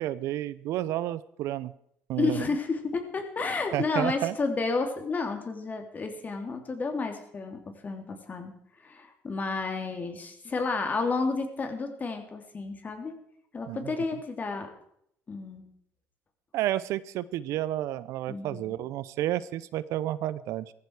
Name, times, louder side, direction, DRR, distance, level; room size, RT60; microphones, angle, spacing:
voice 1, 0.0-1.7 2.1-2.4 3.7-4.3 13.7-13.9 16.5-20.7, right 13 dB, 75° right, 17 dB, 0.7 m, -31 dB
voice 2, 2.2-8.5 8.8-13.2 13.5-14.7 15.3-15.6 18.3-18.7, left 4 dB, 35° left, 5 dB, 3.4 m, -31 dB
16.0 x 14.5 x 4.9 m, 0.70 s
cardioid pair, 95°, 5 cm